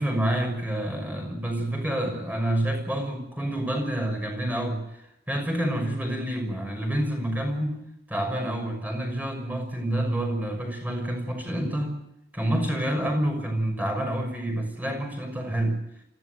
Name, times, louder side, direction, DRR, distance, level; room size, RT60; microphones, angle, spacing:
voice 1, 0.0-7.8 8.1-12.0 12.3-15.8, right 1 dB, 10° right, 3 dB, 6.4 m, -28 dB
26.5 x 17.0 x 8.0 m, 0.80 s
head